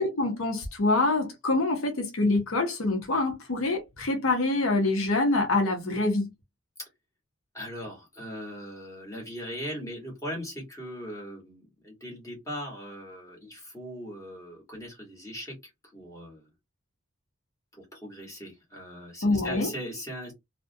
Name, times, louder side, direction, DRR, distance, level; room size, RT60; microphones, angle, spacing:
voice 1, 0.0-6.3 19.2-19.7, left 2 dB, 75° left, 0.7 m, -25 dB
voice 2, 7.5-15.6 15.9-16.5 17.8-20.3, equal, 15° left, 1.1 m, -39 dB
2.4 x 2.1 x 2.6 m
head